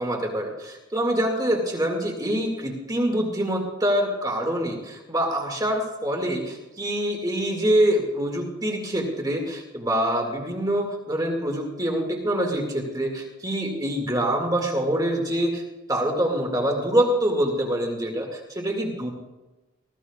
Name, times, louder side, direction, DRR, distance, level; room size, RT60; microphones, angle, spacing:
voice 1, 0.0-15.6 15.9-19.1, right 1 dB, 20° right, 0 dB, 2.2 m, -25 dB
20.0 x 14.5 x 2.4 m, 1.1 s
head